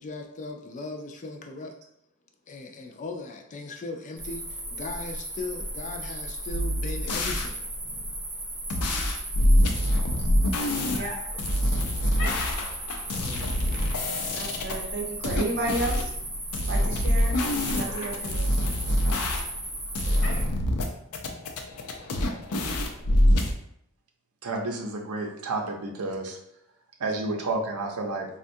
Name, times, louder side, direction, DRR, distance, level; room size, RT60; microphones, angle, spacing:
voice 1, 0.0-1.8 2.5-7.6 9.4-9.5 13.1-13.8, left 3 dB, 35° left, 4 dB, 0.4 m, -38 dB
sound 1, 4.2-20.4, right 1 dB, 10° right, 0.7 m, -36 dB
sound 2, 6.5-7.5 8.7-11.0 11.4-14.7 15.2-16.1 16.5-19.7 19.9-20.8 21.1-23.5, left 1 dB, 90° left, 0.5 m, -25 dB
sound 3, 7.1-23.0, left 1 dB, 70° left, 0.9 m, -46 dB
voice 2, 14.3-16.1 16.7-17.3 17.7-18.5, right 2 dB, 50° right, 1 dB, 0.7 m, -33 dB
voice 3, 24.4-26.4 27.0-28.3, right 2 dB, 85° right, 2 dB, 0.7 m, -30 dB
4.3 x 2.3 x 2.6 m, 0.73 s
head